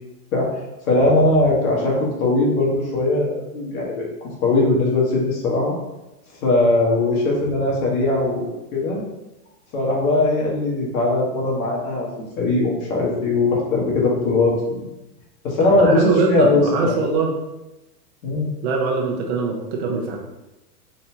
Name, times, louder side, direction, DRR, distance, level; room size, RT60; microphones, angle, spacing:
voice 1, 0.9-5.8 6.4-9.0 9.7-12.1 12.4-14.8 15.4-16.0 16.3-17.0 18.2-18.5, left 2 dB, 60° left, -3 dB, 1.5 m, -20 dB
voice 2, 15.8-17.3 18.6-20.2, right 4 dB, 45° right, 0 dB, 0.8 m, -22 dB
4.1 x 3.1 x 2.8 m, 0.98 s
hypercardioid pair, 140°, 47 cm